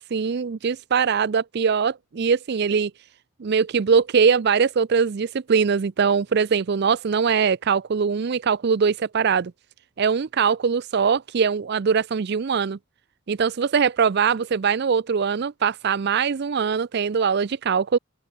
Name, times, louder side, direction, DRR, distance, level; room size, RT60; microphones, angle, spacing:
voice 1, 0.0-2.9 3.4-9.5 10.0-12.8 13.3-18.0, right 6 dB, 50° right, 0.4 m, -22 dB
open air
head